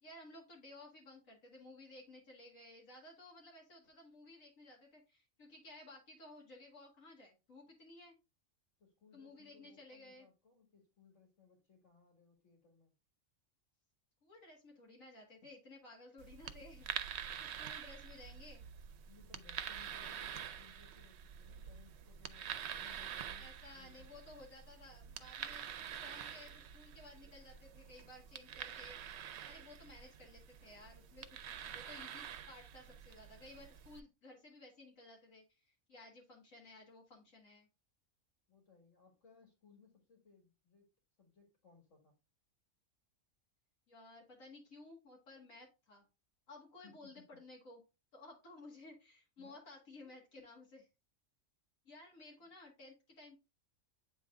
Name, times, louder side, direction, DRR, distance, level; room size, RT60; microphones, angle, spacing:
voice 1, 0.0-8.2 9.1-10.3 14.2-16.9 17.4-18.7 23.4-29.0 29.5-37.7 43.9-46.1 46.5-47.8 48.1-50.9 51.9-53.4, left 2 dB, 85° left, -2 dB, 2.2 m, -56 dB
voice 2, 8.8-13.0 19.0-24.1 38.5-40.9 41.2-42.1 46.8-47.0 49.4-49.6 50.0-50.1, left 5 dB, 70° left, 2 dB, 2.3 m, -65 dB
sound 1, 16.2-34.0, right 9 dB, 65° right, 0.8 m, -47 dB
8.2 x 3.5 x 3.6 m, 0.27 s
omnidirectional pair, 1.4 m